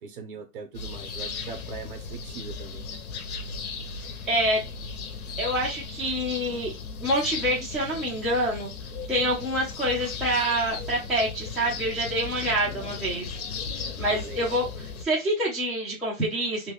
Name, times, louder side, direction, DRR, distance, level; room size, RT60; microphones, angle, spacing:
voice 1, 0.0-3.0 14.1-14.6, right 4 dB, 40° right, 5 dB, 0.8 m, -41 dB
sound 1, 0.7-15.0, left 5 dB, 75° left, 0.8 m, -36 dB
voice 2, 4.3-4.6 5.4-6.7 7.0-8.7 9.1-13.3 14.0-14.7 15.0-16.7, right 1 dB, ahead, -10 dB, 0.6 m, -26 dB
2.8 x 2.3 x 3.4 m, 0.24 s
hypercardioid pair, 155°, 43 cm